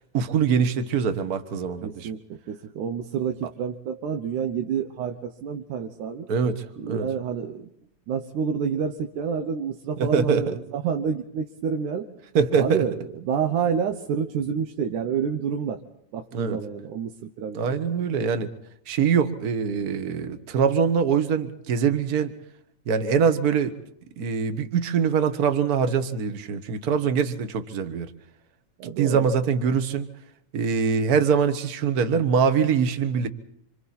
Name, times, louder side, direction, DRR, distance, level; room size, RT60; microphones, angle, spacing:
voice 1, 0.1-2.1 6.3-7.1 10.0-10.6 12.3-12.9 16.3-16.6 17.5-18.5 18.9-22.3 22.9-23.7 24.2-28.1 29.0-30.1 30.5-33.3, right 6 dB, 45° right, 8 dB, 1.4 m, -23 dB
voice 2, 1.8-6.3 6.8-7.7 8.1-12.1 12.6-15.8 16.1-17.6 17.9-18.0 28.8-29.4, right 7 dB, 90° right, 4 dB, 2.6 m, -28 dB
27.0 x 26.5 x 4.3 m, 0.75 s
omnidirectional pair, 3.4 m